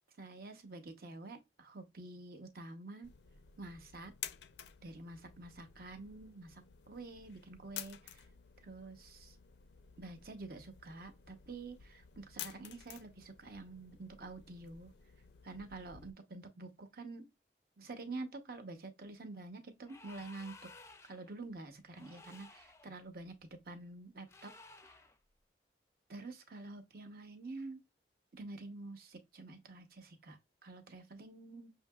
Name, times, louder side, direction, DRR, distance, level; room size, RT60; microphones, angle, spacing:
voice 1, 0.2-3.1 3.6-4.1 4.8-8.2 8.6-9.4 10.0-14.9 15.4-17.3 17.8-20.5 21.0-24.5 24.8-24.9 26.1-27.8 28.3-31.7, right 3 dB, 55° right, 0.8 m, -48 dB
sound 1, 3.0-16.1, left 10 dB, 75° left, 0.4 m, -52 dB
sound 2, 19.8-21.3 21.9-22.9 24.3-25.2, left 3 dB, 15° left, 0.4 m, -56 dB
6.3 x 2.8 x 2.3 m
head